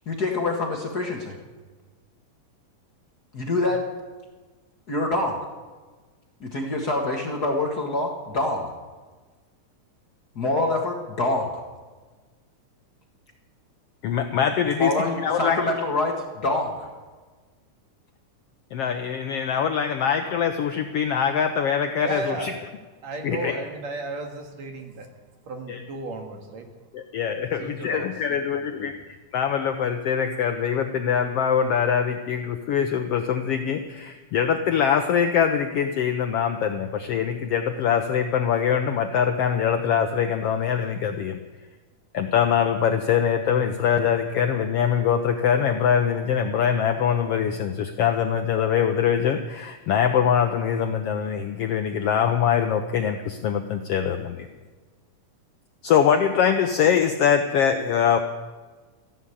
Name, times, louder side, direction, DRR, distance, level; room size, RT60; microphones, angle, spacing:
voice 1, 0.0-1.3 3.3-3.8 4.9-5.4 6.4-8.7 10.3-11.6 14.8-16.9, left 2 dB, 40° left, 0 dB, 1.7 m, -25 dB
voice 2, 14.0-15.6 18.7-22.5 23.2-23.6 25.7-25.8 26.9-28.9 29.3-41.4 42.1-54.5 55.8-58.2, left 8 dB, 75° left, 6 dB, 1.4 m, -23 dB
voice 3, 22.0-22.6 23.0-25.1 25.5-26.7 27.6-28.9, right 3 dB, 65° right, 3 dB, 2.9 m, -34 dB
14.5 x 11.0 x 8.5 m, 1.3 s
omnidirectional pair, 3.5 m